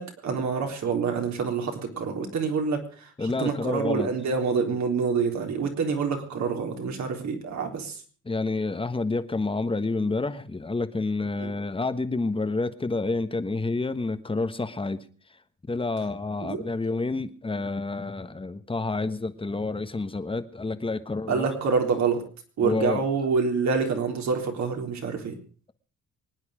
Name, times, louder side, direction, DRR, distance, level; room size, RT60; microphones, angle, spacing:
voice 1, 0.0-8.0 11.4-11.5 16.4-16.6 21.3-22.2 22.6-25.4, right 5 dB, 65° right, 3.8 m, -27 dB
voice 2, 3.2-4.1 8.2-15.0 15.7-21.5 22.6-23.0, left 3 dB, 15° left, 1.3 m, -29 dB
24.5 x 9.7 x 5.0 m
cardioid pair, 90°, 30 cm